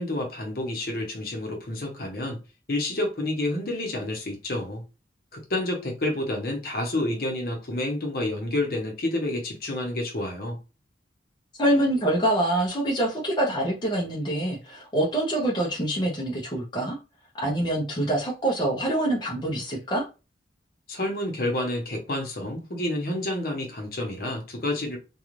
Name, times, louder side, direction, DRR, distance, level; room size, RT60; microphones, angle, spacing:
voice 1, 0.0-2.4 2.7-4.8 5.3-10.6 20.9-25.0, left 1 dB, 50° left, 0.8 m, -29 dB
voice 2, 11.6-17.0 17.4-20.0, right 1 dB, 25° left, 0.6 m, -25 dB
2.5 x 2.3 x 3.0 m
head